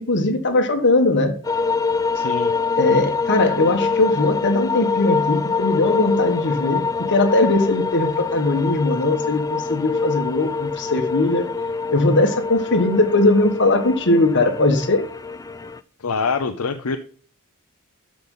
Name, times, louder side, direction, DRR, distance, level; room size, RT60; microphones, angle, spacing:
voice 1, 0.0-1.4 2.8-11.5 11.9-15.0, left 2 dB, 55° left, 1.5 m, -19 dB
sound 1, 1.4-15.8, left 4 dB, 15° left, 0.4 m, -25 dB
voice 2, 2.1-2.6 16.0-17.0, left 4 dB, 70° left, 0.7 m, -25 dB
12.5 x 5.3 x 3.9 m
head